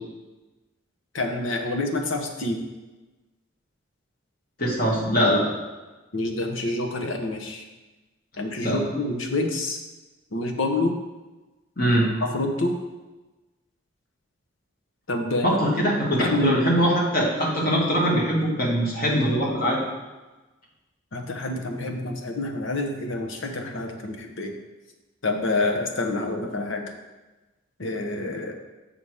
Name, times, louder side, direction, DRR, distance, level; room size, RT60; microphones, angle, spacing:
voice 1, 1.1-2.6 6.1-7.6 8.4-9.8 10.3-10.9 12.3-12.8 15.1-15.5 16.2-16.6 21.1-24.5 25.2-26.8 27.8-28.5, left 2 dB, 75° left, 4 dB, 1.0 m, -27 dB
voice 2, 4.6-5.5 8.6-8.8 11.8-12.1 15.4-19.8, equal, 45° left, -3 dB, 1.9 m, -22 dB
7.1 x 5.8 x 4.9 m, 1.2 s
head